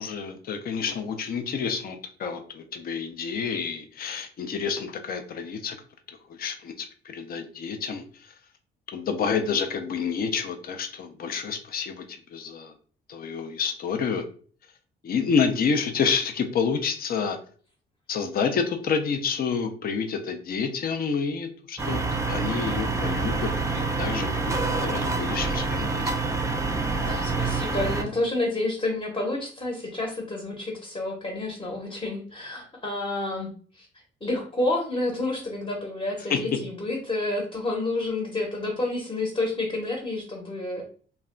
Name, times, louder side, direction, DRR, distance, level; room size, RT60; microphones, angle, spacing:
voice 1, 0.0-5.8 6.3-8.3 8.9-12.7 13.1-14.2 15.0-17.4 18.1-22.0 22.3-26.2 36.3-36.4, left 6 dB, 50° left, 6 dB, 0.5 m, -29 dB
sound 1, 21.8-28.0, right 3 dB, 15° right, 0.5 m, -27 dB
voice 2, 27.0-33.9 34.2-40.8, left 2 dB, 25° left, 0 dB, 0.9 m, -29 dB
2.3 x 2.2 x 3.6 m, 0.44 s
cardioid pair, 90°, 20 cm